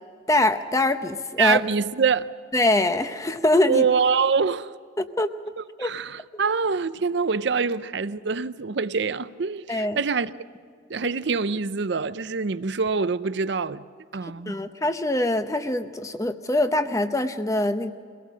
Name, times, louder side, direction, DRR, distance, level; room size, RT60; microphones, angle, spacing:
voice 1, 0.3-1.6 2.5-3.8 5.0-5.3 5.8-5.9 9.7-10.0 11.0-11.1 14.5-17.9, left 2 dB, 15° left, 0.7 m, -23 dB
voice 2, 1.4-2.3 3.7-4.7 5.6-10.3 10.9-13.8 14.1-14.6, right 5 dB, 60° right, 0.5 m, -25 dB
23.5 x 17.5 x 6.4 m
head